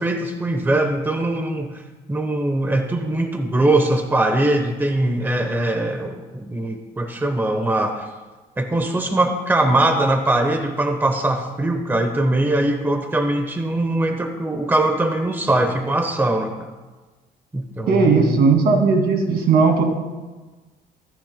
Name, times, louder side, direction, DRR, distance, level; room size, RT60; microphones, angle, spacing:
voice 1, 0.0-1.8 2.1-8.1 8.6-16.7 17.5-18.4, right 1 dB, 10° right, 6 dB, 1.0 m, -21 dB
voice 2, 17.9-19.8, right 4 dB, 65° right, 3 dB, 2.4 m, -16 dB
16.5 x 14.0 x 2.2 m, 1.2 s
cardioid pair, 110°, 17 cm